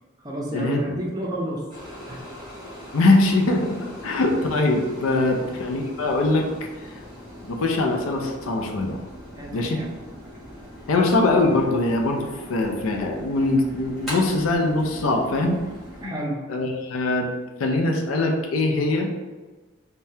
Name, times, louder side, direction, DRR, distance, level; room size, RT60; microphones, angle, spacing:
voice 1, 0.2-1.7 2.1-2.2 5.2-5.5 9.4-9.9 16.0-16.4, right 1 dB, 20° right, -2 dB, 0.5 m, -30 dB
sound 1, 1.7-16.1, equal, ahead, 1.2 m, -40 dB
voice 2, 2.9-6.5 7.5-9.0 9.5-9.8 10.9-15.6 16.0-16.2 16.5-17.3 17.6-19.1, left 2 dB, 90° left, 2 dB, 0.5 m, -22 dB
3.4 x 2.2 x 2.7 m, 1.3 s
head